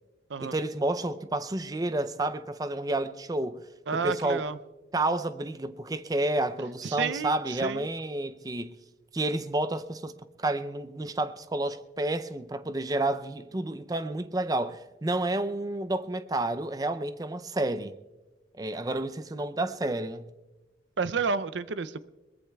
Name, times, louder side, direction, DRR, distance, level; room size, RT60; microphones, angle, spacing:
voice 1, 0.4-4.5 4.9-8.7 9.1-17.9 18.6-20.3, right 2 dB, 20° right, 0.4 m, -30 dB
voice 2, 3.9-4.6 6.8-7.3 7.6-7.8 21.0-22.1, right 5 dB, 80° right, 0.5 m, -30 dB
22.0 x 20.5 x 2.3 m
head